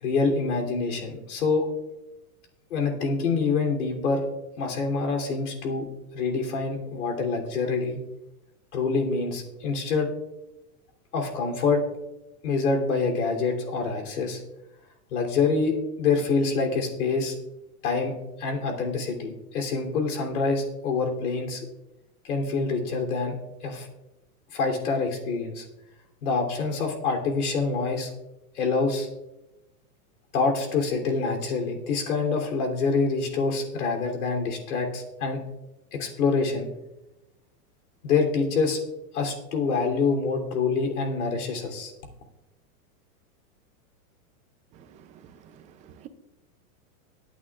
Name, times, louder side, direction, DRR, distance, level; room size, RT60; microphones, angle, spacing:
voice 1, 0.0-1.7 2.7-4.2 4.6-5.9 6.1-8.0 8.7-10.1 11.1-11.8 12.4-14.4 15.1-17.4 17.8-18.1 18.4-21.6 22.2-23.4 23.6-23.9 24.5-25.6 26.2-28.1 28.6-29.1 30.3-35.4 35.9-36.7 38.0-38.8 39.1-41.9, left 4 dB, 80° left, 2 dB, 3.3 m, -26 dB
voice 2, 44.7-46.1, right 10 dB, 15° right, 9 dB, 0.5 m, -50 dB
23.5 x 8.8 x 2.4 m, 0.95 s
supercardioid pair, 150°, 44 cm